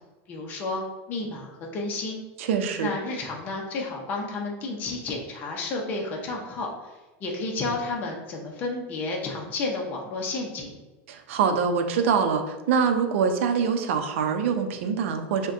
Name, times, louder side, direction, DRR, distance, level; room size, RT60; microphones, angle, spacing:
voice 1, 0.3-2.2 2.8-6.7 7.2-10.7, left 3 dB, 25° left, -1 dB, 0.6 m, -31 dB
voice 2, 2.4-2.9 11.1-15.5, right 6 dB, 75° right, 6 dB, 0.6 m, -24 dB
6.2 x 2.2 x 2.5 m, 1.1 s
supercardioid pair, 170°, 7 cm